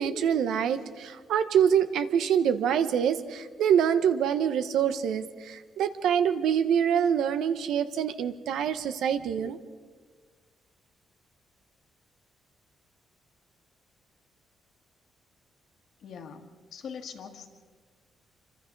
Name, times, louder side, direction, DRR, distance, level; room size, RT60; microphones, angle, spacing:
voice 1, 0.0-9.6, right 8 dB, 80° right, 10 dB, 1.1 m, -25 dB
voice 2, 16.0-17.5, left 6 dB, 55° left, 6 dB, 1.8 m, -42 dB
27.5 x 25.5 x 4.0 m, 1.5 s
cardioid pair, 160°, 0 cm